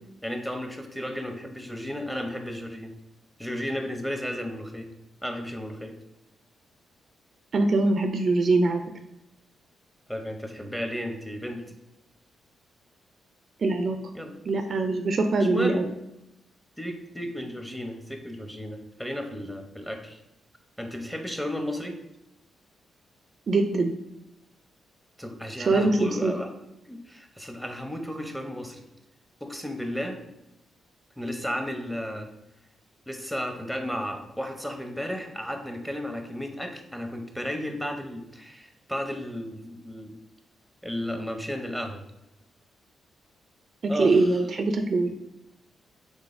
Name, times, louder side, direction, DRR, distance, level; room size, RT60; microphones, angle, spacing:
voice 1, 0.2-2.9 3.4-4.9 5.2-5.9 10.1-11.6 14.1-14.3 15.5-15.8 16.8-20.2 20.8-22.0 25.2-26.5 26.9-28.8 29.4-30.2 31.2-32.3 33.1-40.1 40.8-42.0 43.9-44.4, equal, 5° left, 4 dB, 0.7 m, -33 dB
voice 2, 7.5-8.8 13.6-14.0 14.5-15.8 23.5-23.9 25.6-26.3 44.0-45.1, right 3 dB, 55° right, 6 dB, 0.3 m, -23 dB
3.9 x 3.1 x 2.5 m, 0.89 s
supercardioid pair, 55°, 0 cm